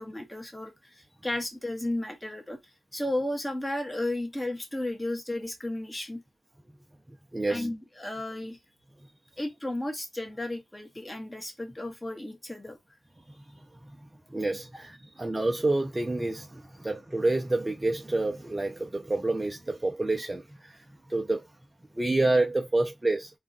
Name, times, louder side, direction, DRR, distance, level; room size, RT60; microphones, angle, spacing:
voice 1, 0.0-6.2 7.5-8.6 9.4-12.8, left 1 dB, 15° left, 1.7 m, -34 dB
voice 2, 7.3-7.7 13.3-13.9 14.3-20.8 21.1-21.4 21.9-23.3, right 2 dB, 25° right, 0.8 m, -28 dB
3.6 x 2.6 x 3.8 m
cardioid pair, 45°, 0 cm